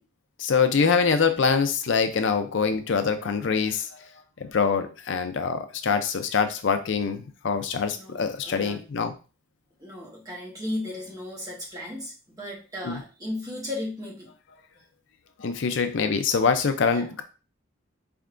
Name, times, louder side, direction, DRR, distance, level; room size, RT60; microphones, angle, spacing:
voice 1, 0.4-4.1 4.4-9.1 12.8-13.0 15.4-17.2, left 5 dB, 65° left, 8 dB, 0.4 m, -24 dB
voice 2, 7.9-8.9 9.8-14.3 16.9-17.1, left 1 dB, 15° right, -2 dB, 1.0 m, -35 dB
4.4 x 3.4 x 2.5 m, 0.33 s
head